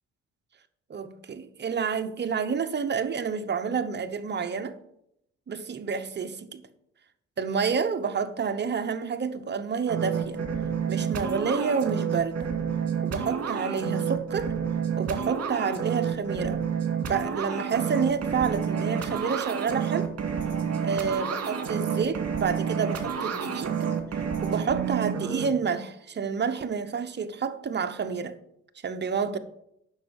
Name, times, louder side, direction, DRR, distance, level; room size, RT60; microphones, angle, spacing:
voice 1, 0.9-4.8 5.5-6.6 7.4-10.4 10.9-12.5 13.0-14.5 15.0-16.6 17.1-20.1 20.8-23.9 24.4-28.3 28.8-29.4, right 6 dB, 35° right, 1.0 m, -29 dB
sound 1, 9.9-25.5, right 7 dB, 55° right, 2.2 m, -29 dB
9.4 x 6.3 x 7.1 m
cardioid pair, 90°, 30 cm